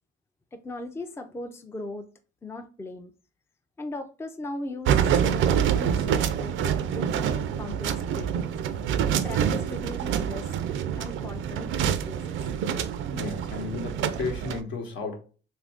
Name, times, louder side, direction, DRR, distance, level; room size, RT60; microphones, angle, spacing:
voice 1, 0.5-2.1 2.4-3.1 3.8-8.5 9.2-10.5 11.0-12.4, left 2 dB, 10° left, 0.4 m, -38 dB
sound 1, 4.9-14.6, right 8 dB, 80° right, 0.4 m, -26 dB
voice 2, 13.1-15.2, left 4 dB, 70° left, 1.0 m, -33 dB
3.2 x 2.6 x 3.4 m
cardioid pair, 90°, 20 cm